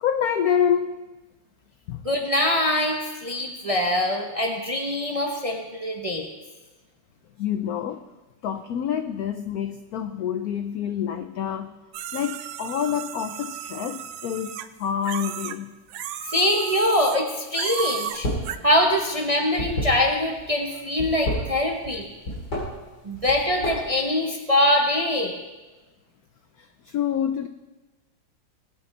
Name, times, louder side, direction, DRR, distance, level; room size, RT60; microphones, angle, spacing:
voice 1, 0.0-1.0 1.9-2.0 7.4-8.1 8.4-11.7 12.1-15.7 26.6-27.5, left 8 dB, 75° left, 9 dB, 0.8 m, -27 dB
voice 2, 2.0-6.3 16.3-18.3 18.6-22.1 23.0-25.4, left 1 dB, 30° right, 1 dB, 0.7 m, -23 dB
sound 1, 11.9-15.6 15.9-17.3 17.5-18.6, right 11 dB, 90° right, 1.4 m, -34 dB
sound 2, 18.1-18.5 18.8-20.4 20.9-21.9 22.2-22.6 23.1-24.0, left 1 dB, 60° left, 4.1 m, -29 dB
19.0 x 8.8 x 3.3 m, 1.2 s
omnidirectional pair, 2.1 m